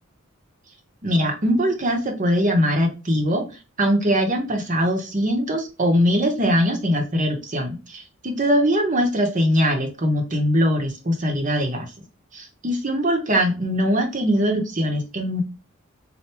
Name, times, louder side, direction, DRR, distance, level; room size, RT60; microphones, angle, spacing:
voice 1, 1.0-3.4 3.8-11.9 12.3-15.4, equal, 35° right, 3 dB, 0.8 m, -21 dB
4.4 x 2.2 x 3.3 m, 0.32 s
head